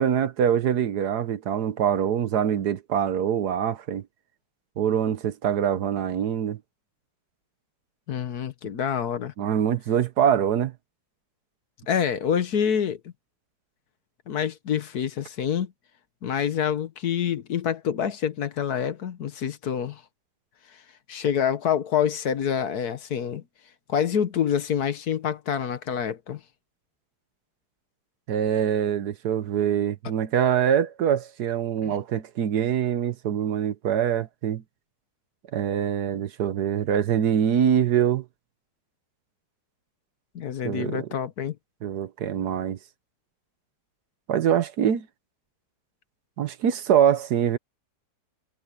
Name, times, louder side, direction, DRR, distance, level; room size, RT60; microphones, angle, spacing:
voice 1, 0.0-4.0 4.8-6.6 9.4-10.7 28.3-34.6 35.5-38.3 40.6-41.1 41.8-42.8 44.3-45.1 46.4-47.6, right 9 dB, 70° right, 1.4 m, -24 dB
voice 2, 8.1-9.3 11.9-13.0 14.3-15.7 16.2-20.0 21.1-23.4 23.9-26.4 31.8-31.9 40.3-41.6, left 8 dB, 65° left, 1.6 m, -27 dB
omnidirectional pair, 1.8 m